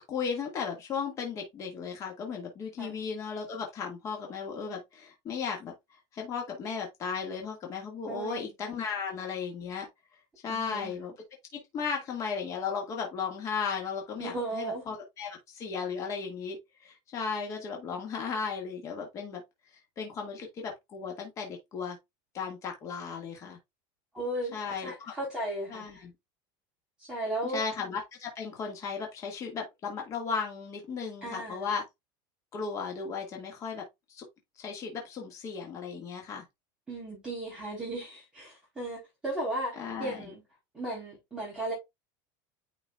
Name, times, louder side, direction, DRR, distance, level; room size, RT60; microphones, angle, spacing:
voice 1, 0.0-5.7 6.1-9.9 10.4-11.1 11.5-19.4 20.0-22.0 22.3-23.6 24.5-25.1 25.7-26.1 27.4-31.8 32.5-33.8 34.1-34.2 34.6-36.4 39.7-40.3, left 5 dB, 30° left, 1.9 m, -35 dB
voice 2, 8.1-8.5 10.5-11.0 14.2-14.8 24.1-26.0 27.0-27.6 31.2-31.7 36.9-40.4 40.7-41.7, right 1 dB, 5° right, 3.8 m, -36 dB
9.3 x 4.7 x 2.4 m
supercardioid pair, 170°, 11 cm